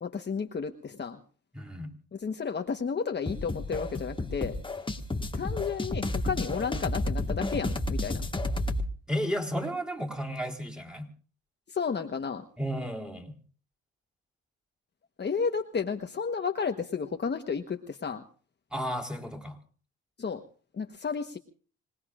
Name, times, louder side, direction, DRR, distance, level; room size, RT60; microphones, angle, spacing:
voice 1, 0.0-1.2 2.1-4.6 5.3-8.2 11.7-12.5 15.2-18.2 20.2-20.4 20.7-21.4, left 5 dB, 35° left, 4 dB, 1.3 m, -32 dB
voice 2, 1.5-1.9 9.1-11.1 12.6-13.4 18.7-19.6, equal, 5° right, 2 dB, 4.0 m, -33 dB
sound 1, 3.3-8.9, left 2 dB, 15° left, 1.6 m, -31 dB
26.0 x 19.5 x 2.5 m, 0.42 s
cardioid pair, 90°, 30 cm